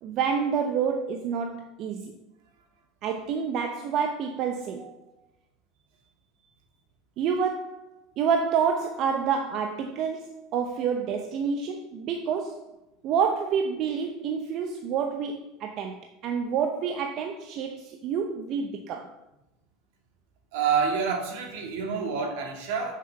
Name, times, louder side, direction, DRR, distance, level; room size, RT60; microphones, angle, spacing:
voice 1, 0.0-2.1 3.0-5.1 7.2-12.7 13.0-19.1, right 6 dB, 55° right, 0.8 m, -28 dB
voice 2, 20.5-22.9, right 6 dB, 75° right, 2.1 m, -27 dB
6.6 x 5.5 x 6.8 m
supercardioid pair, 95°, 0 cm